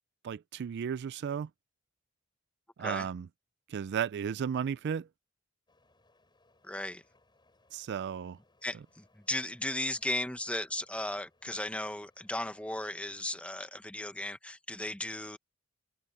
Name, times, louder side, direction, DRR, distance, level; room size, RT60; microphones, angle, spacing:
voice 1, 0.2-1.5 2.8-3.3 3.7-5.1 7.7-8.4, right 7 dB, 55° right, 0.3 m, -34 dB
sound 1, 5.7-13.4, left 2 dB, 20° left, 7.2 m, -68 dB
voice 2, 6.6-7.0 8.6-15.4, left 1 dB, 5° left, 1.0 m, -36 dB
head